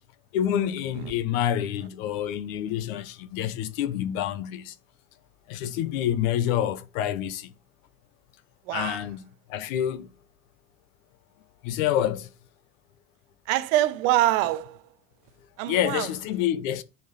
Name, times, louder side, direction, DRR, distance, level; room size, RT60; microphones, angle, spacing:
voice 1, 0.3-4.7 5.5-7.5 8.7-10.1 11.6-12.3 15.6-16.8, left 11 dB, 80° left, 1.1 m, -27 dB
voice 2, 8.7-9.0 13.5-14.8 15.6-16.1, right 14 dB, 70° right, 1.1 m, -25 dB
10.5 x 4.7 x 4.1 m
cardioid pair, 160°, 40 cm